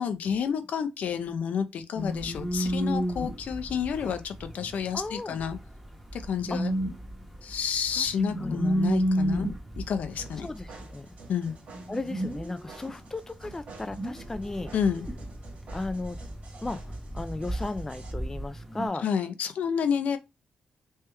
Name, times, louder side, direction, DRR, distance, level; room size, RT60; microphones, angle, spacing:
voice 1, 0.0-5.6 6.1-6.7 7.4-9.5 9.8-10.5 11.3-11.5 14.7-15.0 19.0-20.2, left 7 dB, 70° left, 0.6 m, -30 dB
sound 1, 2.0-18.9, equal, 5° right, 1.0 m, -33 dB
voice 2, 4.9-5.4 6.5-6.6 8.0-8.1 8.4-8.6 10.4-11.1 11.9-14.7 15.7-16.2 16.6-16.8 17.1-19.1, left 2 dB, 15° left, 0.4 m, -35 dB
sound 2, 10.1-18.1, right 4 dB, 60° right, 1.6 m, -50 dB
3.3 x 3.0 x 3.4 m
cardioid pair, 105°, 3 cm